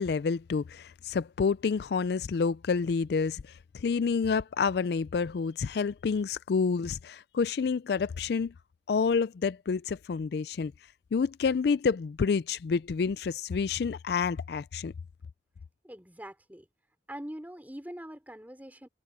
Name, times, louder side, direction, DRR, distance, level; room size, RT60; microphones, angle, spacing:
voice 1, 0.0-8.5 8.9-10.7 11.1-14.9, left 5 dB, 60° left, 0.4 m, -28 dB
voice 2, 15.8-16.7 17.1-18.9, equal, 10° right, 4.3 m, -43 dB
head